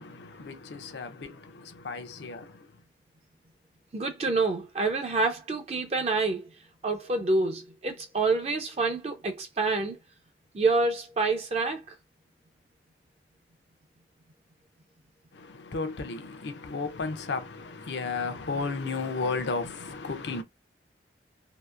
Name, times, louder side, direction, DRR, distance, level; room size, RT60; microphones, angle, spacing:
voice 1, 0.0-2.7 15.3-20.4, left 4 dB, 80° left, 0.6 m, -34 dB
voice 2, 3.9-6.5 6.8-10.0 10.5-11.8, right 3 dB, 35° right, 0.4 m, -27 dB
2.7 x 2.4 x 2.3 m
head